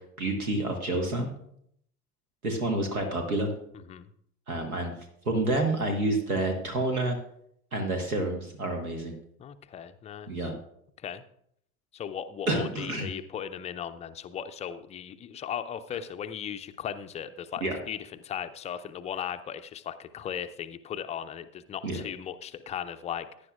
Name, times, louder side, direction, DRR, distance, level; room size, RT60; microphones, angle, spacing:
voice 1, 0.2-1.3 2.4-3.5 4.5-5.0 5.2-7.2 7.7-9.1 10.3-10.6 12.5-13.1 17.6-17.8 21.8-22.0, right 2 dB, 80° right, 4 dB, 1.4 m, -28 dB
voice 2, 9.4-10.5 11.0-11.2 11.9-23.3, left 9 dB, 15° left, 10 dB, 0.4 m, -37 dB
16.5 x 10.0 x 2.4 m, 0.71 s
figure-of-eight pair, 70°, 43 cm